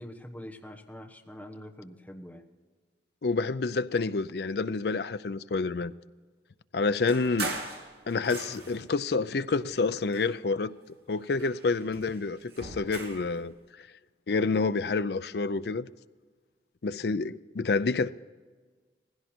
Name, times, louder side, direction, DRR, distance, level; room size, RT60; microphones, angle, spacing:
voice 1, 0.0-2.5, equal, 10° left, 1.2 m, -44 dB
voice 2, 3.2-5.9 6.7-7.6 8.1-10.7 11.1-13.9 14.3-15.9 16.8-18.1, left 4 dB, 60° left, 0.5 m, -28 dB
sound 1, 7.1-8.9 9.6-10.8 11.1-13.3, right 3 dB, 60° right, 2.4 m, -40 dB
18.0 x 16.0 x 4.4 m
head